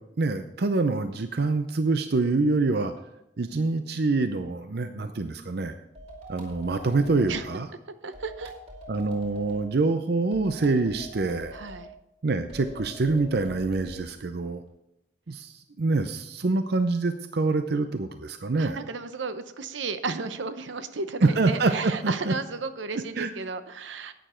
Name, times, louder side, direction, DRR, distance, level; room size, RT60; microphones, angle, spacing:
voice 1, 0.2-2.9 3.4-5.8 6.3-7.7 8.9-11.6 12.2-14.6 15.3-18.8 21.2-22.3 23.2-23.3, right 3 dB, 60° right, 9 dB, 0.5 m, -25 dB
sound 1, 5.9-7.5 8.1-9.6 10.3-11.8 12.5-14.0, right 1 dB, 35° right, 2.7 m, -44 dB
voice 2, 8.0-8.5 11.5-11.9 18.6-24.1, right 4 dB, 85° right, 11 dB, 0.8 m, -34 dB
11.0 x 9.2 x 4.4 m, 0.86 s
head